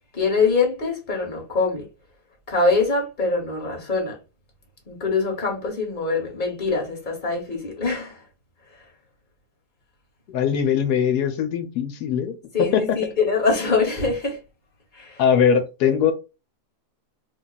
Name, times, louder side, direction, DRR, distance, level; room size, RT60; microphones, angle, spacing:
voice 1, 0.1-1.8 2.5-4.2 4.9-8.2 12.5-14.4 14.9-15.2, left 4 dB, 30° left, 1.2 m, -23 dB
voice 2, 10.3-12.3 12.7-12.8 15.2-16.1, left 8 dB, 80° left, 1.2 m, -20 dB
3.0 x 2.3 x 3.9 m
omnidirectional pair, 1.7 m